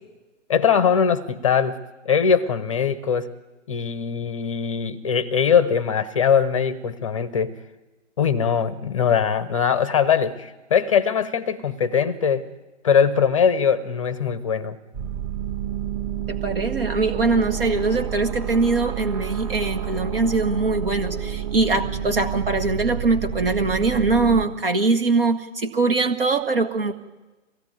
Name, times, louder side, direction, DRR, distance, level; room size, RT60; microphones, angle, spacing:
voice 1, 0.5-3.3 3.7-7.6 8.2-12.5 12.8-14.8, left 7 dB, 25° left, 16 dB, 0.8 m, -21 dB
sound 1, 14.9-24.4, right 9 dB, 25° right, 2.5 m, -29 dB
voice 2, 16.3-26.9, right 3 dB, 45° right, 6 dB, 1.5 m, -22 dB
23.0 x 17.0 x 9.4 m, 1.2 s
figure-of-eight pair, 140°, 38 cm